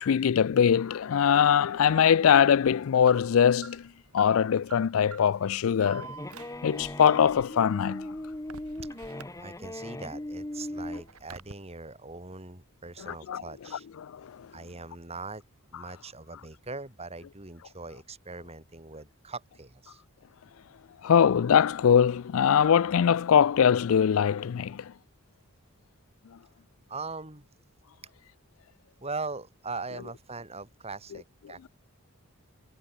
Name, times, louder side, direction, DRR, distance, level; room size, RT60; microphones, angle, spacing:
voice 1, 0.0-3.9 4.1-6.1 6.6-8.1 13.3-13.4 14.0-14.1 21.0-24.9, left 8 dB, 65° left, 0.4 m, -22 dB
Alarm, 1.8-9.9 10.3-11.5, right 4 dB, 75° right, 2.6 m, -48 dB
sound 1, 5.5-11.1, left 1 dB, 15° left, 0.8 m, -39 dB
voice 2, 8.9-13.9 14.5-15.4 15.7-20.0 26.9-27.5 29.0-31.7, right 3 dB, 25° right, 3.3 m, -41 dB
head